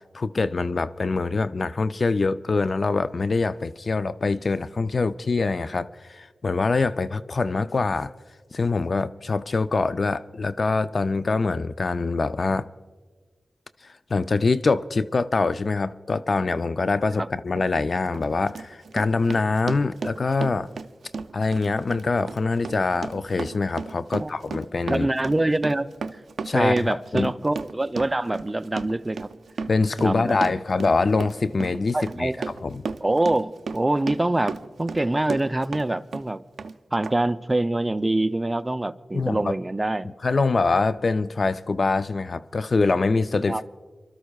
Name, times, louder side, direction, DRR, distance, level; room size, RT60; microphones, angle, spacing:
voice 1, 0.1-8.1 8.5-12.7 14.1-20.7 21.3-25.1 26.5-27.3 29.7-32.3 32.6-32.8 39.1-39.5 40.2-43.6, left 3 dB, 55° left, 0.4 m, -24 dB
Run, 17.5-17.7 18.1-35.9 36.1-36.7 37.0-37.1, right 4 dB, 85° right, 0.4 m, -34 dB
voice 2, 24.9-25.9 26.5-29.3 30.0-30.6 31.9-32.4 33.0-36.4 36.9-40.1 43.5-43.6, right 2 dB, 25° right, 0.5 m, -25 dB
29.0 x 13.0 x 2.4 m
cardioid pair, 50°, 0 cm